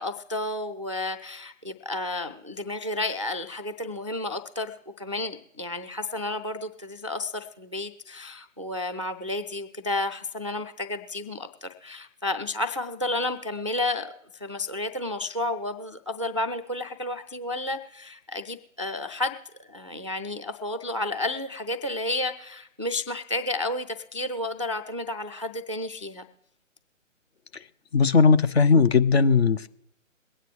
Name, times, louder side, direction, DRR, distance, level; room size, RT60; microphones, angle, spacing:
voice 1, 0.0-19.3 19.6-26.3, left 2 dB, 25° right, 8 dB, 0.3 m, -31 dB
voice 2, 27.9-29.7, left 5 dB, 55° left, 12 dB, 0.7 m, -18 dB
22.5 x 9.1 x 3.2 m, 0.77 s
figure-of-eight pair, 140°, 39 cm